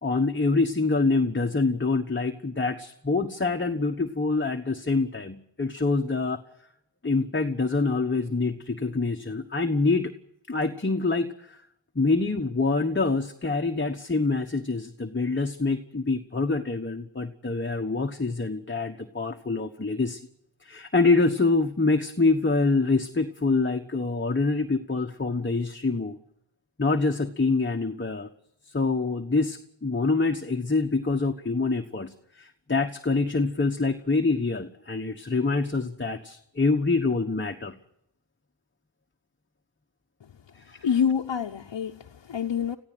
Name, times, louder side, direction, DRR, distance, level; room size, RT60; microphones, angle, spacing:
voice 1, 0.0-6.4 7.0-10.1 10.5-11.6 11.9-20.3 20.6-26.2 26.8-28.3 28.7-37.7 40.6-40.8, left 3 dB, 25° left, 1.2 m, -25 dB
voice 2, 40.8-42.8, left 7 dB, 70° left, 1.0 m, -27 dB
22.0 x 15.0 x 9.2 m
wide cardioid pair, 80°, 44 cm